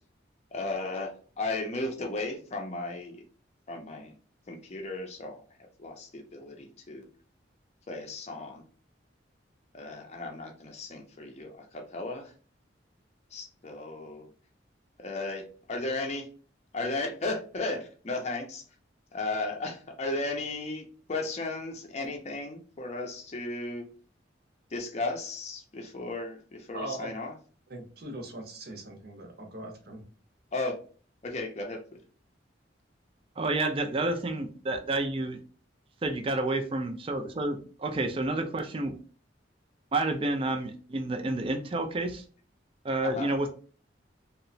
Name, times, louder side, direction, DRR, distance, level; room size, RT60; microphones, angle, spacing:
voice 1, 0.5-3.2 3.7-4.1 4.5-5.4 5.8-7.1 7.9-8.6 9.7-12.3 13.3-14.3 15.0-16.3 16.7-18.6 19.1-23.9 24.7-27.3 30.5-30.8 31.2-32.0 43.0-43.3, left 2 dB, 35° left, 2 dB, 0.5 m, -35 dB
voice 2, 26.7-27.1 27.7-30.0, right 2 dB, 55° right, 2 dB, 0.7 m, -40 dB
voice 3, 33.4-35.4 36.0-38.9 39.9-42.2 42.8-43.5, right 2 dB, 30° right, 5 dB, 0.4 m, -29 dB
2.8 x 2.1 x 2.6 m, 0.40 s
head